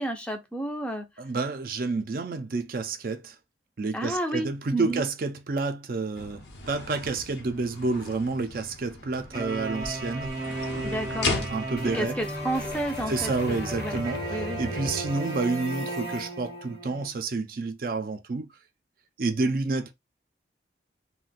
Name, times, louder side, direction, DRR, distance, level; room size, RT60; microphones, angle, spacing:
voice 1, 0.0-1.1 3.9-5.0 10.8-11.5 11.9-14.0 14.3-14.6, right 1 dB, 5° left, 0.4 m, -31 dB
voice 2, 1.2-3.4 3.8-10.4 11.5-12.2 13.1-18.5 19.2-19.9, right 3 dB, 50° right, 0.4 m, -29 dB
sound 1, 6.1-13.6, left 3 dB, 90° left, 0.8 m, -37 dB
sound 2, 9.3-17.1, right 2 dB, 20° right, 0.7 m, -35 dB
future organ, 11.3-16.3, left 1 dB, 60° left, 0.7 m, -39 dB
2.4 x 2.2 x 3.9 m
head